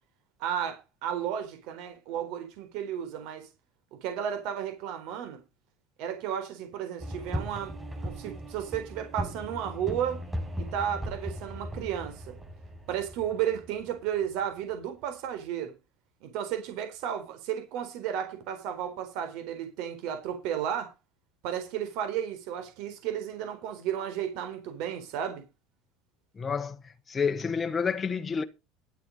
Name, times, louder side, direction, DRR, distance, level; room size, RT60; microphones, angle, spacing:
voice 1, 0.4-3.5 4.0-5.4 6.0-7.7 8.0-10.2 10.6-12.4 12.9-15.7 16.2-20.9 21.4-25.4, right 9 dB, 65° right, 3.9 m, -33 dB
sound 1, 7.0-14.5, equal, 10° right, 5.1 m, -38 dB
voice 2, 26.4-28.4, left 6 dB, 20° left, 1.1 m, -29 dB
11.5 x 8.9 x 5.5 m
cardioid pair, 155°, 0 cm